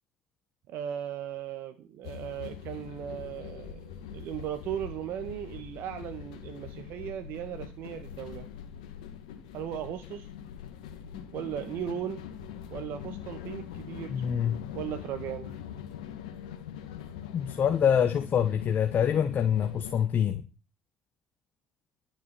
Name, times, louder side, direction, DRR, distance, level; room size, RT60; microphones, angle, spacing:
voice 1, 0.7-8.5 9.5-10.3 11.3-12.2 12.7-14.1 14.7-15.5, right 10 dB, 65° right, 8 dB, 1.8 m, -37 dB
sound 1, 2.0-20.1, left 9 dB, 85° left, 2.0 m, -42 dB
voice 2, 14.1-14.6 17.3-20.4, left 8 dB, 50° left, 7 dB, 1.4 m, -25 dB
12.0 x 7.5 x 9.3 m, 0.34 s
hypercardioid pair, 65°, 4 cm